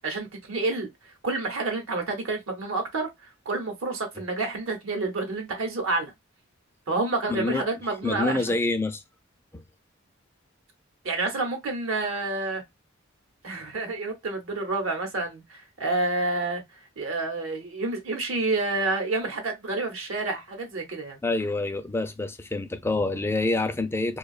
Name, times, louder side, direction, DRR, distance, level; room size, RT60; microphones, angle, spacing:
voice 1, 0.0-0.9 1.2-3.1 3.4-6.1 6.9-8.4 11.0-12.6 13.4-16.6 17.0-21.2, right 3 dB, 85° right, 0.9 m, -29 dB
voice 2, 7.3-7.7 8.0-9.0 9.5-9.6 21.2-24.2, left 2 dB, 10° left, 0.3 m, -27 dB
2.6 x 2.3 x 2.2 m
head